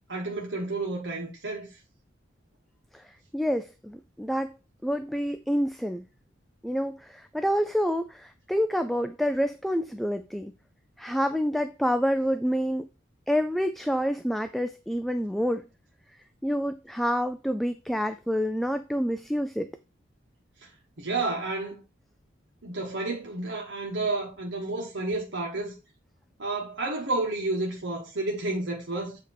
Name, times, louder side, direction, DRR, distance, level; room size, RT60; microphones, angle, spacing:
voice 1, 0.1-1.7 21.0-21.8 22.6-25.7 26.4-29.2, right 2 dB, 70° right, 1.3 m, -31 dB
voice 2, 2.9-4.5 4.8-6.0 6.6-10.5 11.0-12.9 13.3-15.6 16.4-19.7, equal, ahead, 0.3 m, -28 dB
8.0 x 3.1 x 4.4 m
head